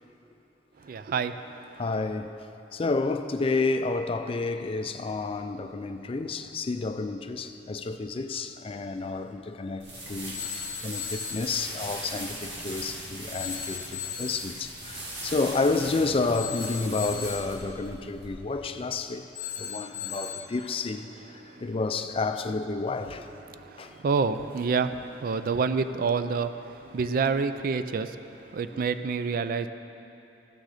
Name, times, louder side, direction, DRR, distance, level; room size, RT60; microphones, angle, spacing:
voice 1, 0.8-1.8 21.5-21.6 23.5-29.7, right 5 dB, 55° right, 0.4 m, -28 dB
voice 2, 1.8-2.3 2.7-19.2 19.6-21.1 21.6-23.3 23.8-23.9, left 3 dB, 30° left, 0.4 m, -30 dB
sound 1, 9.8-18.3, right 1 dB, 70° right, 2.0 m, -39 dB
Telephone, 10.3-11.5 13.3-14.5 16.3-17.5 19.3-20.5, left 9 dB, 15° right, 2.6 m, -37 dB
14.5 x 6.4 x 4.9 m
head